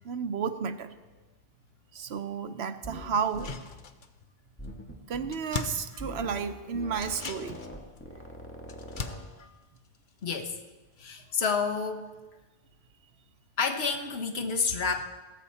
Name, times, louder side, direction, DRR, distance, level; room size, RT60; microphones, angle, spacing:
voice 1, 0.0-0.9 1.9-3.5 5.1-7.6, right 6 dB, 90° right, 9 dB, 1.1 m, -32 dB
sound 1, 2.8-3.1 3.3-3.6 4.6-5.3 6.0-6.5 6.7-9.2, equal, 10° left, 1.8 m, -42 dB
sound 2, 3.2-4.3 4.6-4.7 5.0-6.5 6.9-10.7 11.0-11.1, left 5 dB, 55° left, 1.0 m, -41 dB
voice 2, 10.2-10.6 11.0-12.1 13.6-15.0, left 5 dB, 80° left, 5 dB, 1.3 m, -29 dB
17.0 x 14.0 x 4.2 m, 1.2 s
omnidirectional pair, 1.0 m